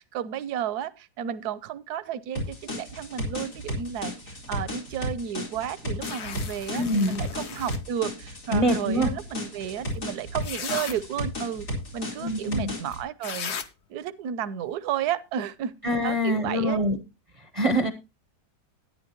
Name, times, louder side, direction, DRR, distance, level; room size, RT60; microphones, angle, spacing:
voice 1, 0.0-11.6 11.9-13.5 13.9-15.7 16.0-16.8, right 9 dB, 75° right, 17 dB, 1.3 m, -32 dB
sound 1, 2.4-13.0, left 1 dB, 80° left, 4.8 m, -34 dB
sound 2, 6.0-7.8 9.9-10.0 10.4-11.0 12.9-13.0 13.2-13.7, left 7 dB, 50° left, 0.9 m, -36 dB
voice 2, 6.7-7.2 8.5-9.1 12.2-12.7 15.8-17.0 17.4-17.9, equal, 30° right, 9 dB, 0.7 m, -25 dB
13.0 x 10.0 x 2.9 m, 0.26 s
omnidirectional pair, 1.7 m